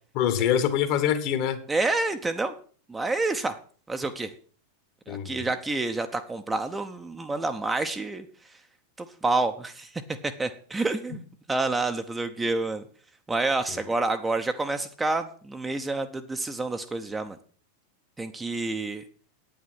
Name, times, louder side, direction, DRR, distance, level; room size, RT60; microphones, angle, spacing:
voice 1, 0.1-1.6 5.1-5.5 13.7-13.8, left 9 dB, 45° left, 1.6 m, -25 dB
voice 2, 1.7-2.5 2.9-3.6 3.9-4.3 5.1-8.3 9.0-9.9 10.2-11.2 11.5-12.8 13.3-17.4 18.2-19.0, right 3 dB, 10° right, 0.8 m, -28 dB
9.3 x 8.7 x 5.9 m
figure-of-eight pair, 90°, 0 cm